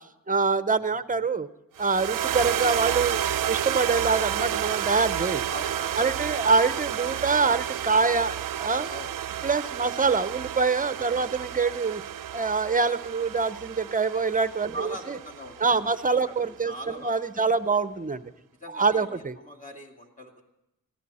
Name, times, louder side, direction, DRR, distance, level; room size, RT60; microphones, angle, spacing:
voice 1, 0.3-1.5 1.8-5.4 6.0-8.9 9.4-12.0 12.3-15.2 15.6-18.3 18.7-19.4, right 4 dB, 25° right, 14 dB, 0.7 m, -25 dB
sound 1, 1.8-16.2, right 10 dB, 85° right, 0.5 m, -31 dB
voice 2, 5.5-6.1 8.9-9.1 11.0-11.3 14.7-15.6 15.9-16.0 16.2-16.3 16.7-17.6 18.6-19.1 19.4-20.4, right 1 dB, 25° left, 1 dB, 2.3 m, -41 dB
21.0 x 15.0 x 4.2 m, 0.91 s
wide cardioid pair, 90°, 32 cm